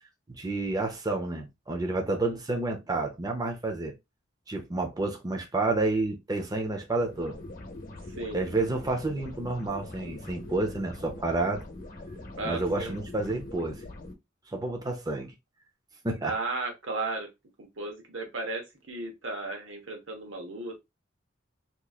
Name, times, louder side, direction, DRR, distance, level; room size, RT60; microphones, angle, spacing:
voice 1, 0.4-3.9 4.5-7.4 8.3-11.6 12.4-13.8 14.5-15.3 16.0-16.3, right 2 dB, 20° right, 0.6 m, -30 dB
sound 1, 6.9-14.1, left 2 dB, 45° left, 0.9 m, -43 dB
voice 2, 12.4-13.0 16.2-17.3 17.6-20.8, right 2 dB, 85° right, 1.1 m, -35 dB
3.7 x 2.9 x 2.3 m
head